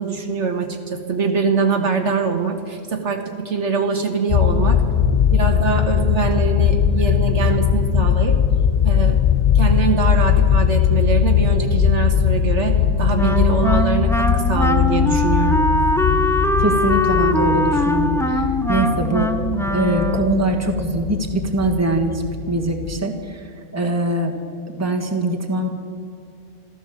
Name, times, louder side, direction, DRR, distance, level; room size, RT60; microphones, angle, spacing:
voice 1, 0.0-4.8 5.3-8.4 8.8-9.2 9.5-15.6, right 5 dB, 60° right, 4 dB, 1.5 m, -23 dB
sound 1, 4.3-23.0, left 8 dB, 85° left, 0.3 m, -19 dB
Wind instrument woodwind instrument, 13.1-20.5, left 1 dB, 5° left, 0.5 m, -21 dB
voice 2, 16.6-19.3 19.7-24.4 24.7-25.7, right 1 dB, 10° right, 2 dB, 1.4 m, -22 dB
14.5 x 13.5 x 7.4 m, 2.4 s
omnidirectional pair, 1.4 m